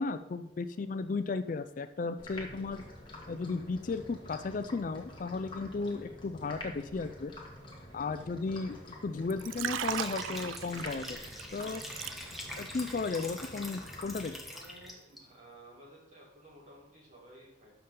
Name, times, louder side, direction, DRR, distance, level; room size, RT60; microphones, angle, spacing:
voice 1, 0.0-2.8 3.3-7.3 7.9-8.8 9.0-11.2 11.5-11.9 12.6-14.4, left 4 dB, 45° left, 10 dB, 0.4 m, -35 dB
sound 1, 2.2-14.9, left 1 dB, 25° left, 1.7 m, -48 dB
voice 2, 8.5-8.8 13.4-13.6 14.2-17.7, right 1 dB, 40° right, -5 dB, 3.8 m, -55 dB
Liquid, 9.3-12.6 12.9-13.2, right 9 dB, 90° right, 0.4 m, -38 dB
Liquid 2, 9.7-15.2, left 1 dB, ahead, 1.2 m, -45 dB
13.0 x 5.7 x 3.8 m, 0.90 s
head